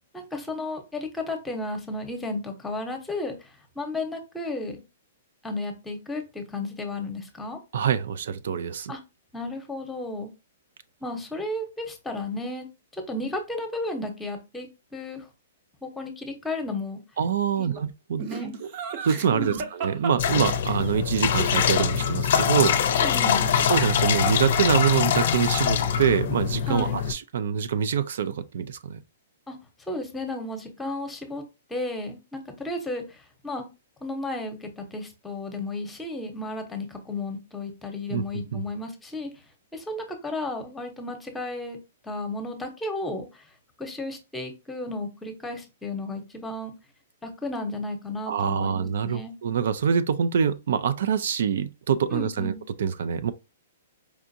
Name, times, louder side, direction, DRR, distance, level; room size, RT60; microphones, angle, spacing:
voice 1, 0.1-4.8 5.4-7.6 8.9-9.0 9.3-10.3 11.0-12.7 12.9-14.7 14.9-15.3 15.8-17.0 17.6-17.7 18.2-18.5 19.3-19.6 23.0-23.5 26.7-27.0 29.5-29.6 29.9-31.4 31.7-33.6 34.0-39.3 39.7-41.8 42.0-43.5 43.8-46.7 47.2-49.3 52.1-52.6, left 2 dB, 10° left, 0.9 m, -33 dB
voice 2, 7.7-8.9 17.2-18.3 18.6-18.7 19.0-22.8 23.6-29.0 38.1-38.2 38.5-38.6 48.3-53.3, right 7 dB, 70° right, 0.3 m, -25 dB
Laughter, 18.2-20.9 23.7-24.5 24.7-25.3, right 6 dB, 45° right, 0.8 m, -36 dB
sound 1, 20.2-27.1, left 8 dB, 65° left, 0.5 m, -23 dB
4.6 x 2.5 x 2.6 m
hypercardioid pair, 140°, 0 cm